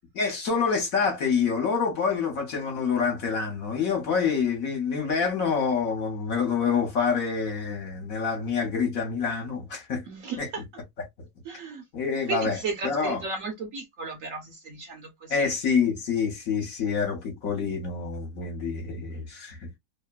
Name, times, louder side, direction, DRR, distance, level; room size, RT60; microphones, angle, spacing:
voice 1, 0.1-10.0 10.4-10.5 11.9-13.2 15.3-19.7, left 5 dB, 55° left, 1.3 m, -27 dB
voice 2, 10.1-10.6 11.4-11.8 12.3-15.5, right 4 dB, 60° right, 1.0 m, -34 dB
3.1 x 2.2 x 2.2 m
omnidirectional pair, 1.8 m